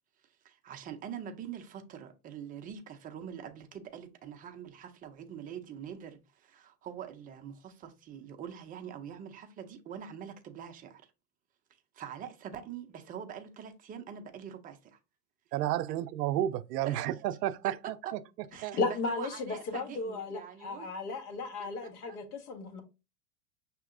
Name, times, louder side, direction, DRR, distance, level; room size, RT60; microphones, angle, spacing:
voice 1, 0.4-11.1 11.9-15.0 16.8-17.1 18.5-20.9 21.6-21.7 22.1-22.2, right 8 dB, 20° right, 0.4 m, -44 dB
voice 2, 15.5-17.9 18.6-18.8, right 13 dB, 80° right, 0.5 m, -31 dB
voice 3, 18.8-22.8, left 3 dB, 65° left, 1.5 m, -35 dB
6.0 x 2.8 x 2.4 m
hypercardioid pair, 120°, 48 cm